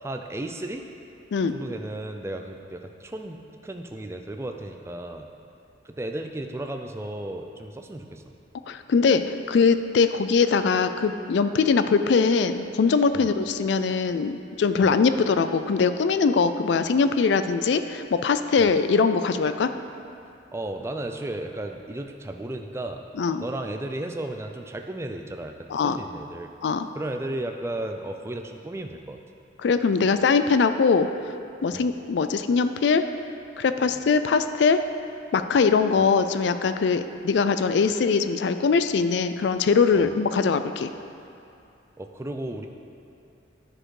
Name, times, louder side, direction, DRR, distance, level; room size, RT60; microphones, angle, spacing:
voice 1, 0.0-0.8 1.5-5.3 5.8-8.2 13.1-13.3 14.8-15.0 18.6-18.7 20.5-23.0 23.4-26.5 26.9-29.2 31.7-31.9 33.9-34.0 39.9-40.1 42.0-42.7, right 1 dB, 15° right, 4 dB, 0.3 m, -34 dB
voice 2, 8.7-19.7 23.2-23.4 25.7-26.0 26.6-26.9 29.6-31.1 31.6-33.1 33.6-34.8 35.3-40.9, left 5 dB, 65° left, 10 dB, 0.3 m, -22 dB
10.0 x 4.3 x 4.8 m, 2.6 s
head